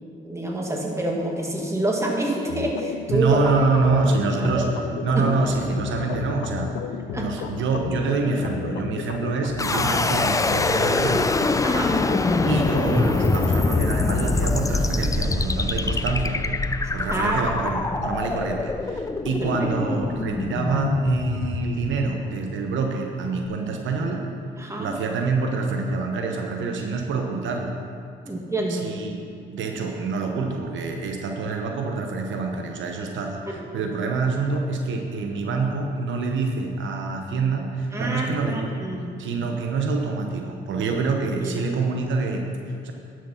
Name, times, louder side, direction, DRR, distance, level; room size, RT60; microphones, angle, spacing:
voice 1, 0.2-3.4 4.6-4.7 5.2-5.3 7.1-7.4 9.7-9.9 11.6-11.9 17.1-17.4 17.9-18.0 19.4-19.5 24.6-24.9 28.3-28.8 33.5-33.6 37.9-39.2 41.4-41.6, right 1 dB, 15° right, -1 dB, 1.9 m, -27 dB
sound 1, 2.5-14.6, left 9 dB, 75° left, 0.5 m, -33 dB
voice 2, 3.1-4.7 5.0-6.7 7.1-11.3 12.5-16.4 16.9-24.2 24.8-27.7 28.7-29.2 29.5-38.7 39.2-42.9, right 4 dB, 75° right, 2 dB, 1.0 m, -26 dB
sound 2, 9.6-22.5, left 3 dB, 15° left, 0.4 m, -24 dB
11.0 x 6.3 x 5.8 m, 2.3 s
cardioid pair, 90°, 20 cm